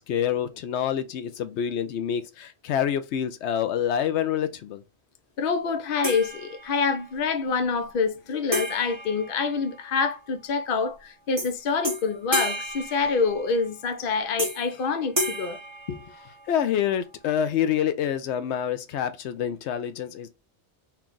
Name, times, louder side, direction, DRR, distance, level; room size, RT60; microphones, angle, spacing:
voice 1, 0.0-4.8 16.5-20.3, left 9 dB, 85° left, 0.9 m, -27 dB
voice 2, 5.4-15.6 15.9-16.0, left 5 dB, 55° left, 0.8 m, -26 dB
sound 1, 6.0-7.0 8.5-10.1 11.4-11.5 11.8-13.7 14.4-14.8 15.2-16.6, equal, 25° right, 1.1 m, -32 dB
4.4 x 2.4 x 3.7 m
omnidirectional pair, 1.1 m